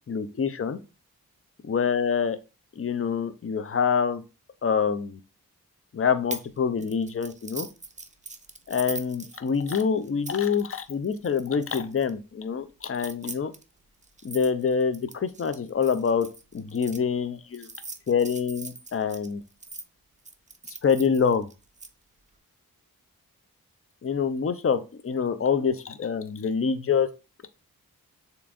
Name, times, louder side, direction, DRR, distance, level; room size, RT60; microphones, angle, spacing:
voice 1, 0.1-0.8 1.7-2.4 2.8-4.2 4.6-5.2 5.9-7.7 8.7-13.5 14.2-16.3 16.5-17.7 18.1-19.4 20.8-21.5 24.0-27.1, left 6 dB, 40° left, 11 dB, 0.6 m, -26 dB
sound 1, 6.3-6.5 6.8-12.1 12.9-17.0 17.5-19.8 20.3-21.9, right 3 dB, 20° right, 0.6 m, -41 dB
6.9 x 3.0 x 2.5 m, 0.30 s
cardioid pair, 60°, 36 cm